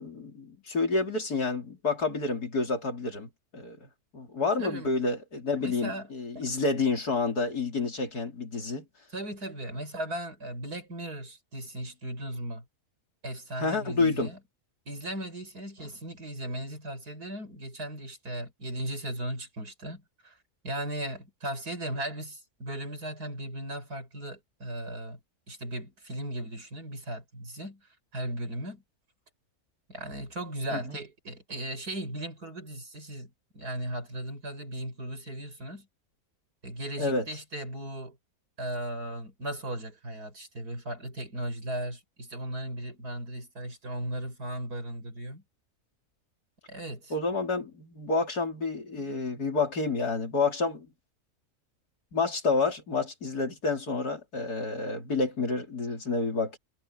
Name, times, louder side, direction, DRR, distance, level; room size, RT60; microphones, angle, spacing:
voice 1, 0.0-3.9 4.1-8.8 13.6-14.3 30.7-31.0 37.0-37.3 47.1-50.9 52.1-56.6, left 3 dB, 80° left, 4.1 m, -29 dB
voice 2, 4.6-4.9 5.6-6.1 6.4-6.5 9.1-12.6 13.2-14.4 14.9-20.4 20.6-25.2 25.5-27.8 28.1-28.8 29.9-35.9 36.6-38.2 38.6-45.4 46.7-47.1, right 1 dB, 85° right, 7.4 m, -37 dB
omnidirectional pair, 1.6 m